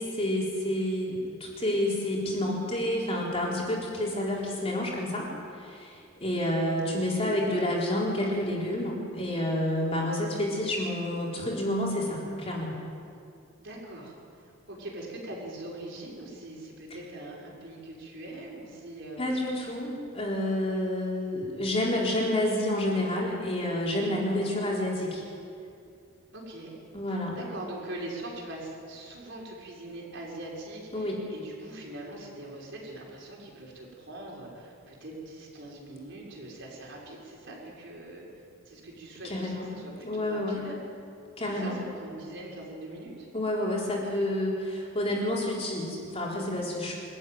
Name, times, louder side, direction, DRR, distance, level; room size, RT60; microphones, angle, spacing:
voice 1, 0.0-5.3 5.6-12.7 19.2-25.2 26.9-27.4 30.9-31.2 39.2-39.7 40.0-40.6 41.4-41.8 43.3-47.0, left 1 dB, 30° left, -4 dB, 4.1 m, -29 dB
voice 2, 7.1-7.7 13.6-14.1 14.7-19.4 26.3-26.7 27.1-38.3 38.6-40.7 41.4-43.3, right 1 dB, 55° right, -2 dB, 5.9 m, -42 dB
25.0 x 14.0 x 9.4 m, 2.4 s
head